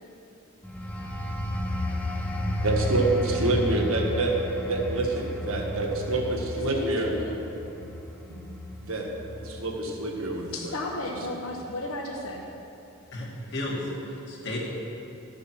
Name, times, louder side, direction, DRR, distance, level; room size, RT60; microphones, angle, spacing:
sound 1, 0.6-11.0 11.4-11.7, left 1 dB, 5° left, 0.6 m, -33 dB
voice 1, 2.6-4.3 4.6-7.1 8.3-8.4 8.8-9.1 9.4-10.7, right 2 dB, 75° right, 0 dB, 1.5 m, -27 dB
voice 2, 6.7-7.4 10.5-12.4, left 2 dB, 70° left, 0 dB, 1.0 m, -34 dB
voice 3, 13.1-14.6, left 1 dB, 55° left, -4 dB, 2.2 m, -33 dB
12.5 x 6.8 x 6.3 m, 2.8 s
head